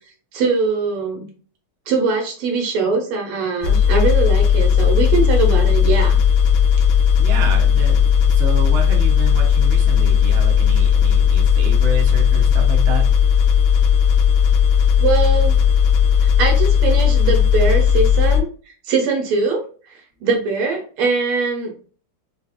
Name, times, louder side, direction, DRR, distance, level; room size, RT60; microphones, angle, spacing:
voice 1, 0.3-1.3 1.9-6.2 15.0-15.6 16.4-18.5 18.9-19.6 20.2-21.7, right 4 dB, 80° right, 2 dB, 1.9 m, -21 dB
sound 1, 3.6-18.4, left 7 dB, 75° left, 1.3 m, -15 dB
voice 2, 7.2-13.1, right 2 dB, 65° right, 0 dB, 0.7 m, -29 dB
5.0 x 2.1 x 2.4 m, 0.41 s
omnidirectional pair, 2.4 m